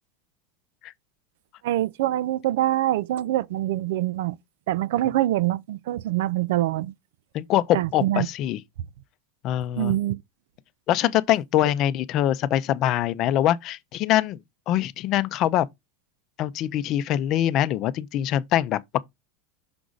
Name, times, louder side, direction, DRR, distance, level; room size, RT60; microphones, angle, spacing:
voice 1, 1.6-4.4 4.7-6.9 7.7-8.3 9.8-10.2, right 14 dB, 75° right, 0.5 m, -24 dB
voice 2, 7.3-8.6 9.4-10.0 10.9-14.4 14.7-15.7 16.4-19.0, left 12 dB, 40° left, 0.5 m, -23 dB
6.0 x 4.9 x 3.9 m
supercardioid pair, 145°, 0 cm